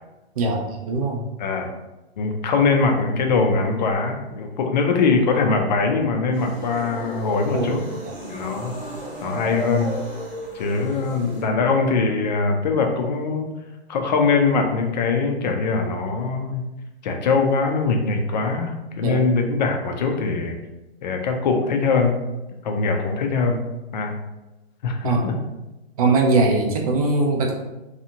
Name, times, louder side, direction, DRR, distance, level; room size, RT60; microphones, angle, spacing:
voice 1, 0.4-1.2 7.5-7.7 8.0-8.1 19.0-19.2 25.0-25.2 26.0-27.5, right 3 dB, 35° right, 0 dB, 0.5 m, -21 dB
voice 2, 2.2-7.8 8.3-8.7 9.2-9.9 10.5-13.5 13.9-16.7 17.0-20.6 21.0-22.1 22.6-23.6 23.9-24.1 24.8-25.3, left 4 dB, 45° left, 3 dB, 0.5 m, -22 dB
sound 1, 6.3-11.4, right 1 dB, 5° right, 1.1 m, -34 dB
2.8 x 2.3 x 2.7 m, 1.0 s
hypercardioid pair, 150°, 32 cm